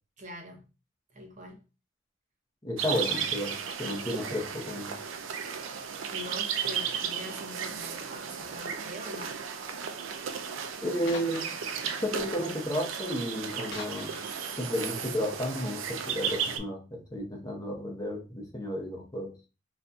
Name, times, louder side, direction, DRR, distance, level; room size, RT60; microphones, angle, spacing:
voice 1, 0.2-0.6 1.1-1.6 6.1-9.4, equal, 40° right, 0.7 m, -43 dB
voice 2, 2.6-4.9 10.8-11.5 11.8-14.2 14.6-19.3, equal, 20° left, 0.7 m, -33 dB
sound 1, 2.8-16.6, right 7 dB, 85° right, 0.4 m, -35 dB
sound 2, 7.9-8.3 9.1-9.2 9.6-9.7 10.1-10.2 10.4-10.5 11.1-15.8, left 4 dB, 60° left, 0.8 m, -48 dB
4.0 x 2.5 x 2.2 m
head